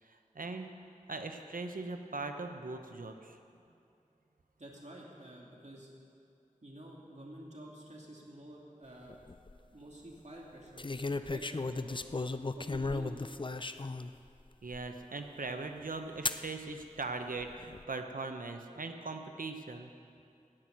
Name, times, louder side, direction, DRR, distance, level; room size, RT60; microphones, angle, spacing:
voice 1, 0.0-3.4 14.6-19.9, right 3 dB, 85° right, 6 dB, 0.9 m, -40 dB
voice 2, 4.6-5.9 6.6-9.2 9.7-10.9 11.2-12.2 12.6-13.3, right 1 dB, 55° right, -3 dB, 2.6 m, -50 dB
sound 1, 9.1-9.5 10.8-14.1 14.7-14.8 16.3-16.5 17.4-17.8, left 3 dB, 35° left, 0.5 m, -35 dB
16.5 x 6.2 x 9.0 m, 2.6 s
wide cardioid pair, 45°, 14 cm